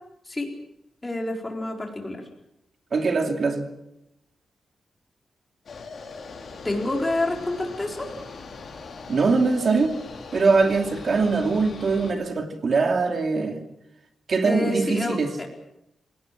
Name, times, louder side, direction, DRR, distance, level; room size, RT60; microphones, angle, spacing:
voice 1, 1.0-2.2 6.6-8.1 14.4-15.5, left 2 dB, 15° left, 1 dB, 4.4 m, -28 dB
voice 2, 2.9-3.7 9.1-9.9 10.3-13.6 14.3-15.3, right 4 dB, 45° right, 5 dB, 2.6 m, -22 dB
sound 1, 5.7-12.1, left 4 dB, 50° left, 4.5 m, -40 dB
27.5 x 18.5 x 7.6 m, 0.84 s
wide cardioid pair, 175°, 0 cm